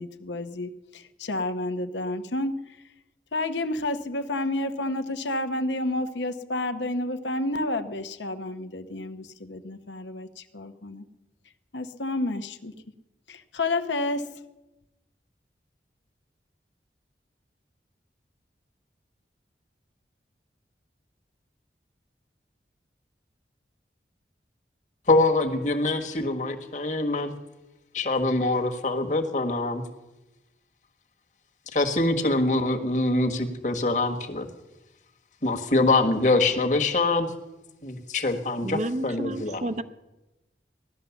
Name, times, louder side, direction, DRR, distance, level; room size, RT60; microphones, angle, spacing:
voice 1, 0.0-2.5 3.3-11.0 11.7-12.7 13.3-14.3, left 2 dB, 90° left, 9 dB, 1.0 m, -30 dB
voice 2, 25.1-27.3 27.9-29.8 31.7-34.5 35.4-37.3 37.8-39.6, left 2 dB, 45° left, 5 dB, 1.5 m, -24 dB
voice 3, 38.6-39.8, right 1 dB, 40° right, 12 dB, 0.6 m, -30 dB
16.5 x 12.0 x 7.1 m, 1.0 s
head